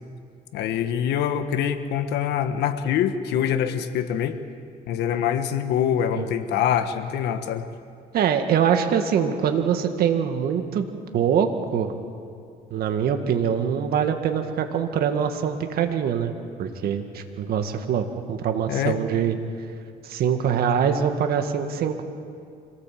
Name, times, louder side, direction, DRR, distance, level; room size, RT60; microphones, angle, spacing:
voice 1, 0.5-4.4 4.9-7.6 18.7-19.0, left 9 dB, 80° left, 9 dB, 1.5 m, -24 dB
voice 2, 8.1-10.8 11.1-11.9 12.7-16.3 16.6-19.4 20.0-22.0, right 8 dB, 65° right, 6 dB, 2.0 m, -23 dB
26.0 x 18.0 x 7.6 m, 2.3 s
cardioid pair, 110°, 17 cm